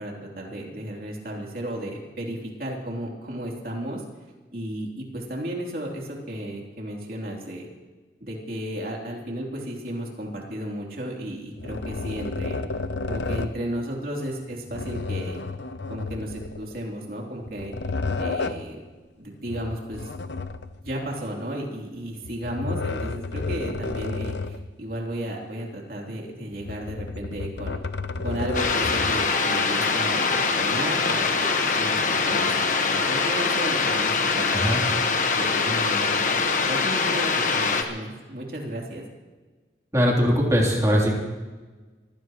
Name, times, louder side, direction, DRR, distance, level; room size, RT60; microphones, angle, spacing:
voice 1, 0.0-4.0 4.5-7.7 8.2-12.6 13.1-15.4 15.9-17.7 18.2-18.8 19.2-20.1 20.8-27.8 28.2-34.8 35.3-36.4 36.7-39.0, right 1 dB, 55° right, -1 dB, 3.3 m, -34 dB
sound 1, 11.6-13.6 14.7-16.8 17.4-18.7 19.5-21.0 22.2-24.7 25.1-25.2 26.5-29.3, left 3 dB, 80° left, 0.7 m, -31 dB
sound 2, 28.5-37.8, left 4 dB, 45° left, 1.3 m, -23 dB
voice 2, 39.9-41.1, equal, 20° right, -2 dB, 3.2 m, -20 dB
23.5 x 16.5 x 3.1 m, 1.3 s
head